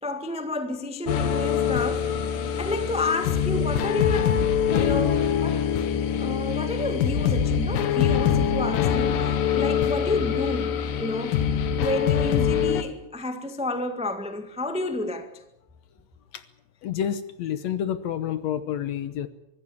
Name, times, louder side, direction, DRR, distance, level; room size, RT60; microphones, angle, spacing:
voice 1, 0.0-2.1 2.6-4.4 4.7-5.7 6.2-11.4 11.8-15.3, left 1 dB, 10° right, 0.4 m, -30 dB
sound 1, 1.1-12.8, left 8 dB, 85° left, 3.2 m, -24 dB
voice 2, 16.8-19.3, left 9 dB, 70° left, 1.8 m, -29 dB
24.0 x 14.0 x 9.9 m
omnidirectional pair, 3.8 m